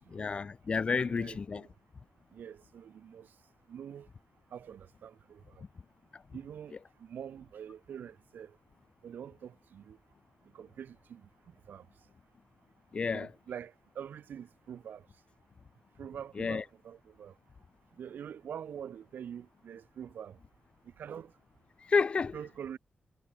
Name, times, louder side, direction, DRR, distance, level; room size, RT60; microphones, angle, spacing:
voice 1, 0.1-1.6 12.9-13.3 16.4-16.6 21.9-22.3, left 5 dB, 35° left, 0.7 m, -30 dB
voice 2, 1.0-1.7 2.3-3.3 3.7-4.1 4.5-5.6 6.3-8.6 9.0-10.0 10.5-11.3 11.7-11.8 13.1-15.1 16.0-17.3 18.0-20.4 21.0-21.3 22.3-22.8, right 8 dB, 75° right, 1.9 m, -45 dB
wide cardioid pair, 170°, 3 cm